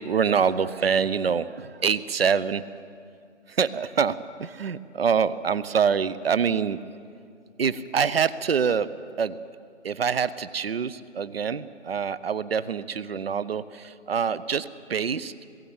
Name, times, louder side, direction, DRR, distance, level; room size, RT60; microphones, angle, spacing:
voice 1, 0.0-2.6 3.5-6.8 7.6-8.9 9.2-9.4 9.8-15.3, right 6 dB, 55° right, 16 dB, 0.8 m, -25 dB
20.5 x 16.0 x 8.7 m, 2.3 s
figure-of-eight pair, 165°, 36 cm